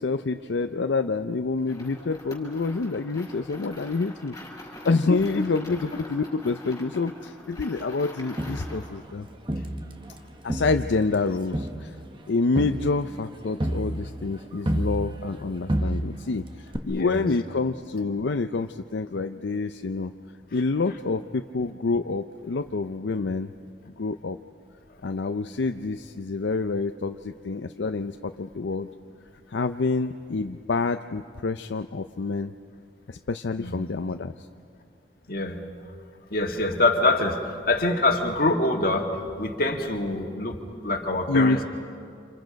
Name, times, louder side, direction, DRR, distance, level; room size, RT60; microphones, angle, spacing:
voice 1, 0.0-4.4 4.8-9.3 10.4-11.9 12.3-20.1 20.5-23.5 24.0-24.4 25.0-28.9 29.5-32.5 33.1-34.5 41.3-41.6, left 3 dB, 70° left, 7 dB, 0.5 m, -27 dB
sound 1, 1.6-8.9, left 1 dB, 15° left, 5.7 m, -43 dB
voice 2, 5.1-5.4 16.9-17.3 33.6-33.8 35.3-35.6 36.3-40.6 40.8-41.6, left 2 dB, 50° left, 3 dB, 2.0 m, -25 dB
Crowd, 8.4-10.2 10.5-15.4 15.7-16.4 16.7-16.8, right 1 dB, 25° right, 1.2 m, -30 dB
30.0 x 27.5 x 5.2 m, 2.3 s
head